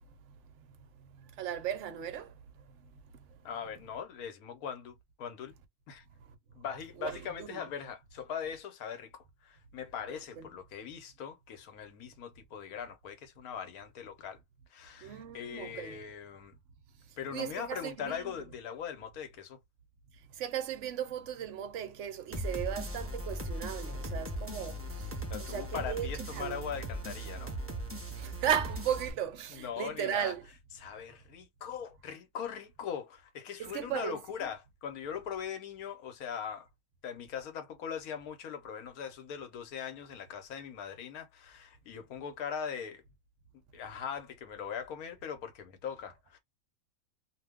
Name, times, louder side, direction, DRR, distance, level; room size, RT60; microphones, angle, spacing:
voice 1, 1.0-2.3 3.1-3.2 7.0-7.7 10.4-10.5 15.0-16.0 17.3-18.2 20.3-26.1 26.3-26.6 28.1-30.4 33.6-34.2, right 9 dB, 65° right, 0.9 m, -36 dB
voice 2, 3.4-5.5 5.9-6.0 6.5-14.4 14.7-16.6 17.2-19.6 25.3-27.5 29.5-30.3 30.7-36.7 37.0-43.0 43.7-46.4, left 7 dB, 85° left, 1.2 m, -40 dB
sound 1, 22.3-29.1, right 1 dB, 15° right, 0.4 m, -38 dB
2.7 x 2.2 x 3.4 m
omnidirectional pair, 1.5 m